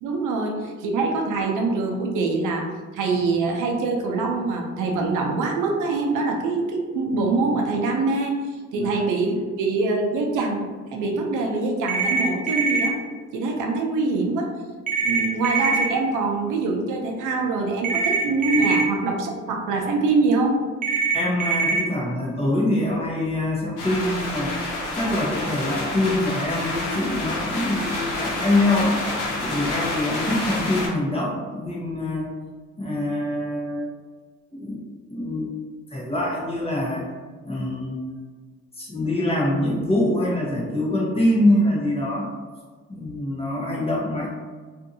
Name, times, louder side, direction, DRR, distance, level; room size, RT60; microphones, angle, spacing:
voice 1, 0.0-8.3 8.7-13.0 13.3-14.5 15.0-20.6, right 3 dB, 85° right, 2 dB, 0.6 m, -24 dB
sound 1, 11.9-12.9 14.9-15.9 17.8-18.8 20.8-21.8, right 4 dB, 30° right, 0.5 m, -23 dB
voice 2, 21.1-24.5 24.9-29.0 29.4-32.3 32.8-33.9 34.5-34.8 35.1-35.5 35.9-37.0 37.4-38.0 38.8-42.3 42.9-44.3, left 1 dB, 20° left, -4 dB, 0.9 m, -24 dB
sound 2, 23.8-30.9, left 2 dB, 85° left, 0.8 m, -28 dB
2.6 x 2.5 x 2.6 m, 1.4 s
cardioid pair, 90°, 30 cm